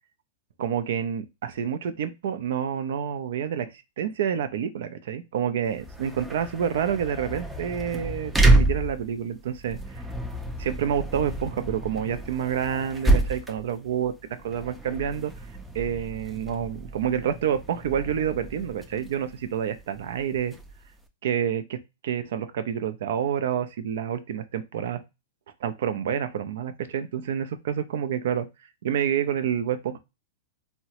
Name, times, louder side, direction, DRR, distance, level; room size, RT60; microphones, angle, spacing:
voice 1, 0.6-3.7 4.0-10.0 10.6-14.1 14.4-15.3 15.7-20.6 21.2-21.8 22.0-25.0 25.6-28.5 28.8-30.0, right 8 dB, 70° right, 11 dB, 0.5 m, -28 dB
sound 1, 5.7-21.0, right 2 dB, 10° right, 0.5 m, -28 dB
3.6 x 2.1 x 2.8 m, 0.25 s
hypercardioid pair, 115°, 0 cm